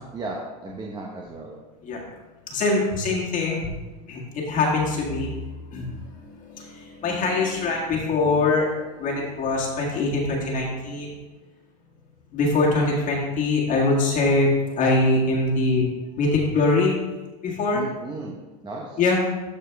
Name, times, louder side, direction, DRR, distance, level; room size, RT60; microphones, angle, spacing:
voice 1, 0.1-1.6 17.7-18.4 18.6-19.0, right 3 dB, 20° right, -2 dB, 1.0 m, -35 dB
voice 2, 2.5-3.6 4.1-4.2 4.5-5.3 5.7-5.9 6.1-8.7 9.0-11.2 12.3-15.9 16.2-16.9 17.4-17.8 19.0-19.2, left 3 dB, 40° left, -3 dB, 1.9 m, -23 dB
13.0 x 4.5 x 3.5 m, 1.2 s
supercardioid pair, 115°, 21 cm